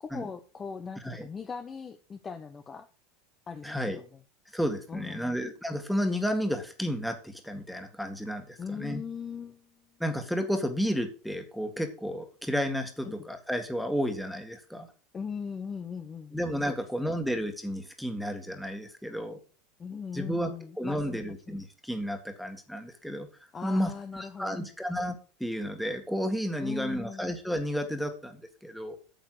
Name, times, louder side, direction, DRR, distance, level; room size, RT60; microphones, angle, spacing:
voice 1, 0.0-2.9 3.5-4.1 4.9-5.4 8.6-9.8 13.0-13.1 15.1-16.4 16.6-17.2 19.8-21.2 21.5-21.6 23.5-24.7 26.6-27.3, left 6 dB, 20° left, 8 dB, 0.8 m, -39 dB
voice 2, 3.6-4.0 4.5-9.0 10.0-14.9 16.3-19.4 20.1-20.5 20.8-23.3 23.6-29.0, equal, ahead, 6 dB, 1.9 m, -32 dB
9.1 x 7.0 x 6.4 m, 0.36 s
supercardioid pair, 140°, 0 cm